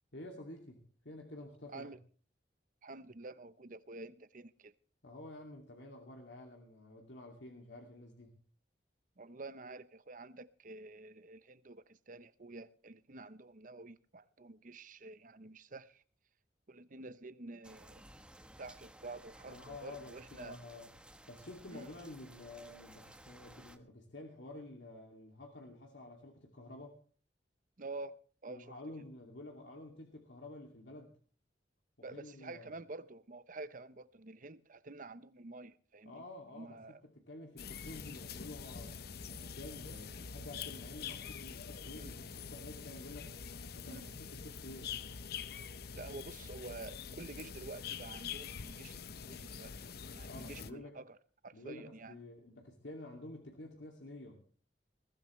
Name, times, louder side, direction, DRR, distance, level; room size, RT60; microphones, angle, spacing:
voice 1, 0.1-1.9 5.0-8.3 19.5-20.9 21.3-27.0 28.5-31.1 32.0-32.7 36.1-38.9 39.2-43.3 43.7-45.0 50.2-51.0 51.5-54.4, left 2 dB, 80° left, 2.6 m, -50 dB
voice 2, 2.8-4.7 9.2-16.0 16.7-18.0 18.6-20.6 21.7-21.9 27.8-28.7 32.0-36.2 36.5-37.0 41.9-42.1 43.8-44.0 45.9-49.7 50.1-51.2 51.4-52.2, right 3 dB, 50° right, 0.9 m, -49 dB
sound 1, 17.6-23.8, right 1 dB, 5° right, 1.1 m, -57 dB
sound 2, 37.6-50.7, left 6 dB, 60° left, 0.7 m, -45 dB
21.0 x 15.5 x 3.2 m
head